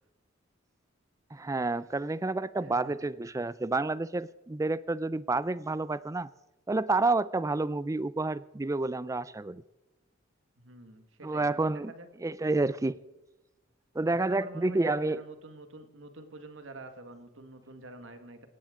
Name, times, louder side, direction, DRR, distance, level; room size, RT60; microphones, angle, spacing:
voice 1, 1.3-6.3 6.7-9.6 11.2-11.9 12.2-13.0 14.0-15.2, right 2 dB, 15° right, 0.4 m, -29 dB
voice 2, 2.6-3.0 10.6-12.1 14.1-18.5, right 2 dB, 65° right, 1.7 m, -47 dB
18.0 x 16.5 x 3.8 m
head